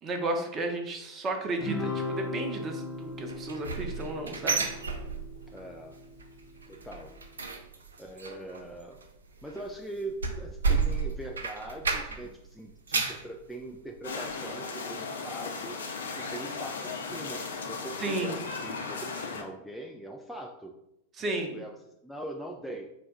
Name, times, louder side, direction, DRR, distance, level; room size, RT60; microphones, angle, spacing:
voice 1, 0.0-4.6 18.0-18.4 21.2-21.6, right 2 dB, 25° right, 4 dB, 0.7 m, -33 dB
Guitar, 1.6-6.2, left 2 dB, 30° left, 0.8 m, -37 dB
sound 1, 3.3-5.6 5.9-6.3 6.6-12.4 12.7-13.3 13.8-13.9 14.3-14.4, right 5 dB, 70° right, 0.4 m, -32 dB
voice 2, 5.5-6.0 6.7-7.2 8.0-9.0 9.4-15.8 16.2-20.7 21.2-21.8 22.0-22.9, right 1 dB, ahead, 0 dB, 0.3 m, -42 dB
sound 2, 14.0-19.4, left 4 dB, 65° left, 0.5 m, -36 dB
4.2 x 2.2 x 4.6 m, 0.84 s
figure-of-eight pair, 90°, 0 cm